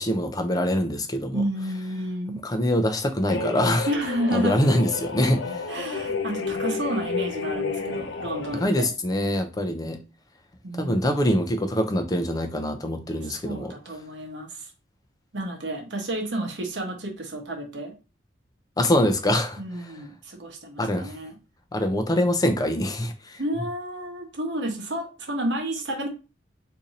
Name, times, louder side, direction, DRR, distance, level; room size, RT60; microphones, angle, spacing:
voice 1, 0.0-1.4 2.4-3.9 4.3-5.6 8.6-10.0 10.7-13.7 18.8-19.9 20.8-21.1 21.7-23.4, left 1 dB, 20° left, 0.5 m, -24 dB
voice 2, 1.3-2.4 3.9-4.6 5.7-8.9 10.6-11.4 13.2-14.7 15.3-17.9 19.6-21.4 23.4-26.1, right 1 dB, 65° right, 0.9 m, -31 dB
sound 1, 3.3-8.7, left 4 dB, 75° left, 0.5 m, -31 dB
2.7 x 2.6 x 3.9 m
head